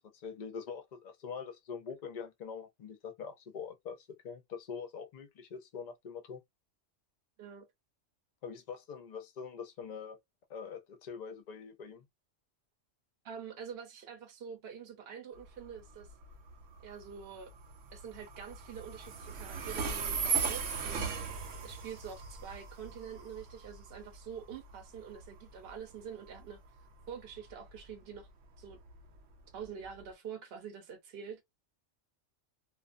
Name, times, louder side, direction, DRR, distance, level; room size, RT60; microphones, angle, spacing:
voice 1, 0.1-6.4 8.4-10.2 10.5-12.1, left 6 dB, 50° left, 0.5 m, -44 dB
voice 2, 13.2-16.1 16.8-17.5 17.9-21.1 21.6-26.6 27.1-28.3 28.6-28.8 29.5-31.4, right 7 dB, 60° right, 0.9 m, -46 dB
Train, 15.3-30.1, right 6 dB, 85° right, 1.0 m, -39 dB
2.5 x 2.3 x 2.4 m
omnidirectional pair, 1.3 m